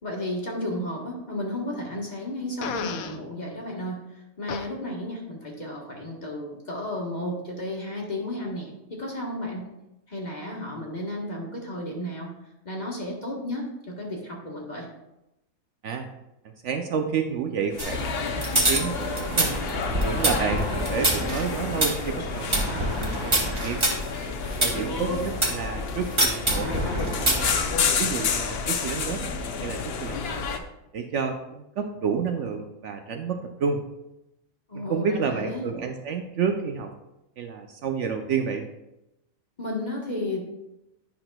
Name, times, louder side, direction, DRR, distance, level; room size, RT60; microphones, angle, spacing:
voice 1, 0.0-9.6 10.1-12.3 12.6-14.9 24.7-25.2 34.7-35.7 39.6-40.4, left 1 dB, 35° left, -2 dB, 1.3 m, -33 dB
Fart, 2.6-3.2 4.5-4.7, left 7 dB, 80° left, 1.0 m, -32 dB
voice 2, 16.6-19.5 20.0-22.9 23.2-23.8 24.6-27.6 28.0-30.4 30.9-33.8 34.8-36.9 37.4-38.7, right 6 dB, 65° right, 5 dB, 0.8 m, -30 dB
sound 1, 17.7-30.6, left 5 dB, 55° left, 0.7 m, -30 dB
sound 2, 17.8-25.6 26.2-27.6, right 1 dB, 25° right, 1.0 m, -26 dB
10.5 x 5.8 x 2.2 m, 0.92 s
omnidirectional pair, 1.5 m